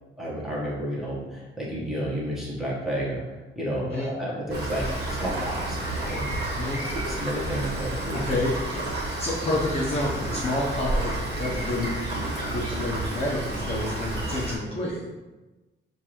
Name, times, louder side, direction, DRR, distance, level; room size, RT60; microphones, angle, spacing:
voice 1, 0.2-3.2 3.6-6.3 7.1-8.2 12.1-12.3, equal, ahead, -7 dB, 1.1 m, -31 dB
Rain, 4.5-14.6, right 1 dB, 55° right, 1.2 m, -30 dB
voice 2, 8.1-8.5 9.2-11.9 12.5-15.1, left 1 dB, 30° left, -6 dB, 0.7 m, -29 dB
6.6 x 2.6 x 3.0 m, 1.1 s
wide cardioid pair, 175°, 21 cm